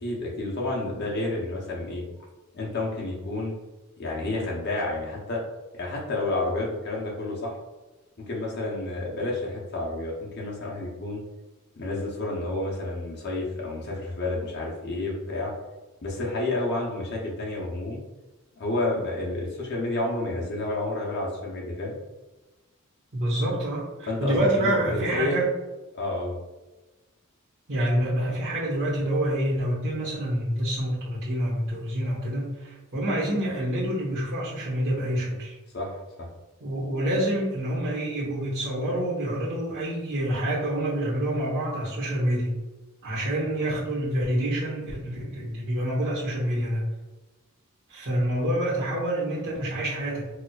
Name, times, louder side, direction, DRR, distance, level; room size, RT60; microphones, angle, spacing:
voice 1, 0.0-2.0 2.5-3.5 4.0-5.4 5.7-7.5 8.3-11.2 11.8-15.5 16.0-18.0 18.6-22.0 24.1-25.4 25.9-26.4 35.7-35.9 36.2-36.3, left 2 dB, 50° left, -2 dB, 0.8 m, -30 dB
voice 2, 23.1-25.5 27.7-35.5 36.6-42.5 43.0-46.8 47.9-50.2, right 1 dB, 55° right, -8 dB, 1.1 m, -27 dB
4.3 x 2.3 x 2.3 m, 1.1 s
head